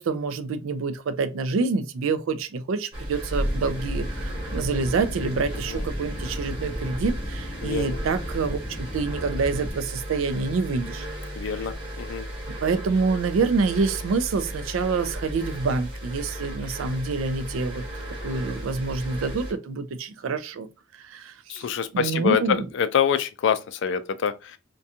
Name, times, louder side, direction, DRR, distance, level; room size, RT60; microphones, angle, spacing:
voice 1, 0.0-11.1 11.3-11.7 12.5-17.8 18.2-20.7 20.9-21.7 21.9-22.7, right 4 dB, 85° right, 0.4 m, -27 dB
sound 1, 2.9-19.5, equal, 25° right, 1.0 m, -34 dB
sound 2, 3.4-9.8, equal, 15° left, 0.5 m, -36 dB
voice 2, 7.6-8.0 11.4-12.2 21.5-24.6, left 7 dB, 65° left, 0.3 m, -25 dB
2.4 x 2.2 x 2.7 m
head